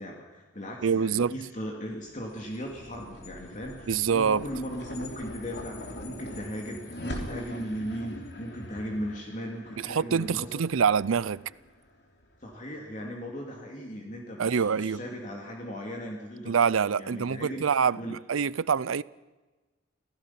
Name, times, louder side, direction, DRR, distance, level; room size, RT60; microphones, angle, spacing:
voice 1, 0.0-10.6 12.4-16.5 16.9-17.7 17.9-18.1, equal, 35° left, 2.8 m, -38 dB
voice 2, 0.8-1.3 3.9-4.4 9.8-11.5 14.4-15.0 16.5-19.0, right 6 dB, 90° right, 0.5 m, -25 dB
sound 1, 2.0-12.6, left 1 dB, 55° left, 3.4 m, -42 dB
27.0 x 16.5 x 5.9 m
head